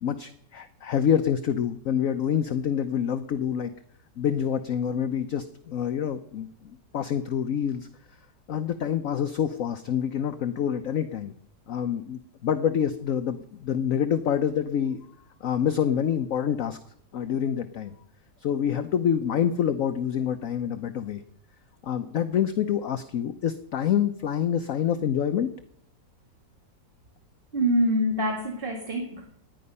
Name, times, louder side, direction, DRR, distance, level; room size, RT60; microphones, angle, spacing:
voice 1, 0.0-3.7 4.2-7.9 8.5-11.3 11.7-15.0 15.4-16.8 17.1-18.0 18.4-21.2 21.8-25.5, left 8 dB, 60° left, 9 dB, 1.0 m, -27 dB
voice 2, 27.5-29.3, equal, 30° right, 2 dB, 2.0 m, -25 dB
18.5 x 10.0 x 5.5 m, 0.70 s
omnidirectional pair, 2.0 m